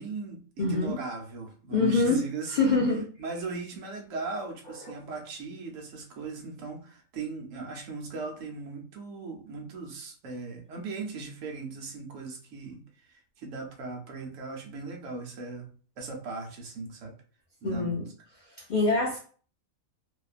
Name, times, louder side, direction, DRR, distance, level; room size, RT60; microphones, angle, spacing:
voice 1, 0.0-2.8 3.2-15.7 16.0-17.1 17.6-18.1, right 3 dB, 70° right, 1 dB, 1.0 m, -38 dB
voice 2, 0.6-1.0 1.7-2.2 2.5-3.0 17.6-18.1 18.7-19.2, left 3 dB, 90° left, -2 dB, 0.4 m, -25 dB
2.5 x 2.3 x 2.4 m, 0.42 s
omnidirectional pair, 1.5 m